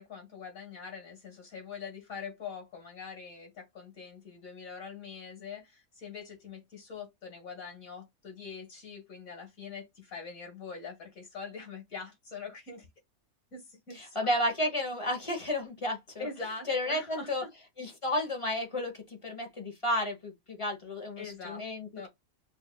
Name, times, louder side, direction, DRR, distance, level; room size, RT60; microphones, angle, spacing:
voice 1, 0.0-12.9 13.5-14.3 16.2-17.5 21.2-21.6 22.0-22.1, left 5 dB, 80° left, 2.4 m, -43 dB
voice 2, 13.9-16.3 16.7-17.4 17.8-22.1, left 1 dB, 25° left, 1.0 m, -32 dB
6.3 x 2.6 x 2.3 m
omnidirectional pair, 1.4 m